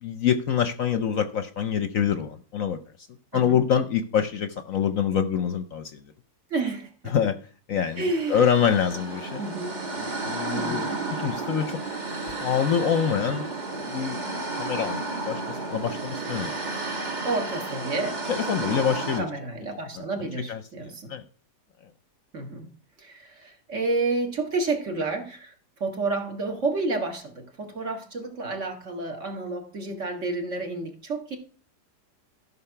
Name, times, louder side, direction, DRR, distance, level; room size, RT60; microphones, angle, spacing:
voice 1, 0.0-2.8 3.3-6.0 7.1-7.4 7.7-9.4 10.0-11.8 12.4-13.5 13.9-14.2 14.6-15.0 15.3-16.5 18.3-19.3 20.5-21.2, left 8 dB, 60° left, 10 dB, 1.0 m, -25 dB
voice 2, 6.5-7.2 8.0-8.5 9.4-9.8 10.5-11.1 17.2-18.2 18.6-18.8 19.2-21.1 22.3-25.5 25.8-31.4, right 3 dB, 45° right, 4 dB, 2.0 m, -30 dB
sound 1, 7.9-19.2, right 3 dB, 25° right, 1.5 m, -32 dB
13.5 x 5.7 x 5.8 m, 0.40 s
omnidirectional pair, 1.8 m